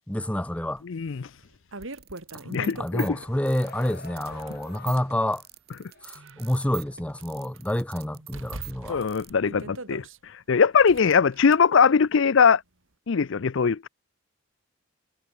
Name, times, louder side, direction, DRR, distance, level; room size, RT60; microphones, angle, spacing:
voice 1, 0.1-0.8 2.8-5.4 6.0-9.0, left 1 dB, 5° left, 0.5 m, -28 dB
voice 2, 0.8-1.3 2.5-3.2 8.9-10.0 10.5-12.6 13.1-13.9, left 6 dB, 60° left, 0.5 m, -21 dB
sound 1, 0.8-0.9 1.4-3.4 4.1-5.1 5.8-7.2 7.5-7.6 8.3-10.2 10.8-11.6, right 2 dB, 65° right, 2.5 m, -41 dB
sound 2, 1.8-9.3, right 13 dB, 45° right, 1.5 m, -45 dB
sound 3, 2.8-5.5 5.9-6.0, left 4 dB, 45° left, 1.5 m, -47 dB
head